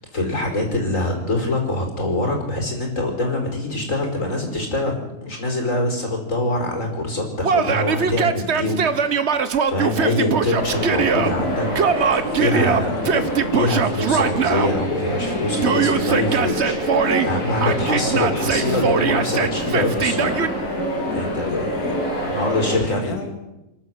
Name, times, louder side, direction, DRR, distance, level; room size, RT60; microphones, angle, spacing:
voice 1, 0.1-9.3 9.7-11.7 12.1-13.2 13.5-20.3 21.1-21.7 22.2-23.2, left 2 dB, 55° left, 2 dB, 5.4 m, -24 dB
Yell, 7.4-11.3 11.8-14.7 15.6-17.3 17.6-20.5, right 6 dB, 50° right, 1.2 m, -21 dB
sound 1, 10.5-22.8, equal, 85° left, 4.7 m, -26 dB
voice 2, 12.5-13.6 21.1-22.0 22.8-23.3, left 3 dB, 70° left, 4 dB, 2.9 m, -34 dB
28.0 x 12.0 x 7.9 m, 0.96 s
omnidirectional pair, 1.6 m